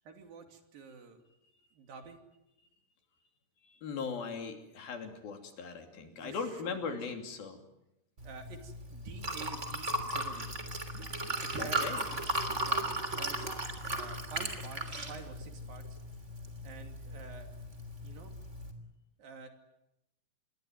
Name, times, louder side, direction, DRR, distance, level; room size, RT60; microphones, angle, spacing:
voice 1, 0.1-1.2 1.7-2.2 6.0-7.0 8.2-10.5 11.4-12.3 12.6-15.8 16.6-17.5 18.0-18.3 19.2-19.5, right 4 dB, 65° right, 6 dB, 4.4 m, -48 dB
voice 2, 3.6-7.6 11.6-12.0, left 5 dB, 65° left, 6 dB, 4.7 m, -39 dB
Liquid, 8.2-18.7, right 1 dB, 20° right, 3.0 m, -37 dB
27.5 x 22.0 x 9.4 m, 0.87 s
omnidirectional pair, 4.6 m